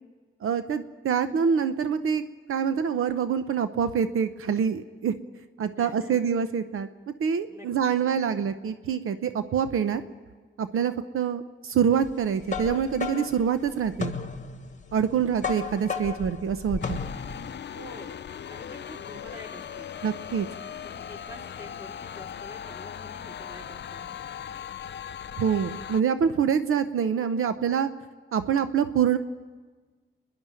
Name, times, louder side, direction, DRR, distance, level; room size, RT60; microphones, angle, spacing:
voice 1, 0.4-2.2 2.5-5.1 5.6-6.9 7.2-10.0 10.6-14.1 14.9-17.0 20.0-20.5 25.4-27.9 28.3-29.2, right 7 dB, 80° right, 10 dB, 0.8 m, -25 dB
voice 2, 5.8-6.2 7.5-8.4 17.7-18.2 18.5-20.0 20.8-24.1, left 1 dB, 15° right, 0 dB, 3.4 m, -47 dB
sound 1, 12.1-17.5, left 5 dB, 35° left, 1.3 m, -34 dB
sound 2, 16.8-26.0, left 9 dB, 55° left, 0.6 m, -39 dB
29.5 x 10.5 x 9.0 m, 1.4 s
cardioid pair, 95°, 21 cm